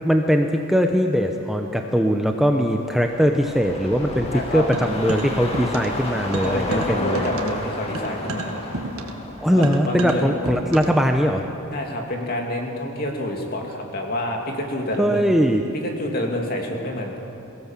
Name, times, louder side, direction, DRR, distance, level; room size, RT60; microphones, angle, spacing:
voice 1, 0.0-7.3 9.4-11.4 15.0-15.6, equal, ahead, 3 dB, 0.8 m, -20 dB
sound 1, 2.6-11.1 11.4-11.5, left 1 dB, 30° left, 2.3 m, -32 dB
voice 2, 4.3-4.6 6.4-8.9 9.5-10.3 11.7-15.4 15.7-17.2, left 1 dB, 45° left, 1 dB, 2.8 m, -28 dB
sound 2, 4.7-6.0 6.3-11.1, right 2 dB, 85° right, 1.7 m, -32 dB
23.5 x 17.0 x 7.5 m, 2.9 s
head